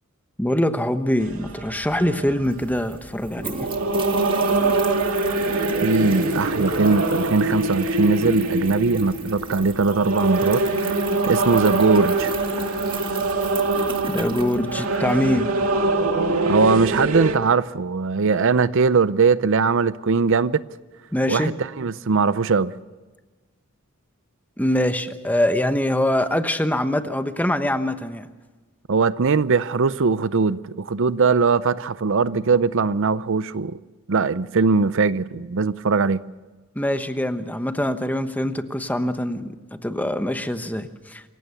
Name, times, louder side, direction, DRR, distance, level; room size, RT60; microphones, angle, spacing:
voice 1, 0.4-3.5 14.1-15.5 21.1-21.5 24.6-28.3 36.7-39.5 39.8-41.2, left 1 dB, 10° left, 1.1 m, -23 dB
sound 1, 1.2-17.4, right 2 dB, 80° right, 2.2 m, -24 dB
sound 2, 2.2-2.3 2.5-15.2, right 4 dB, 25° right, 1.8 m, -37 dB
voice 2, 5.8-11.0 11.3-12.3 16.5-20.6 21.3-22.7 28.9-33.8 34.1-36.2, right 4 dB, 60° right, 0.6 m, -20 dB
27.0 x 15.5 x 7.0 m
head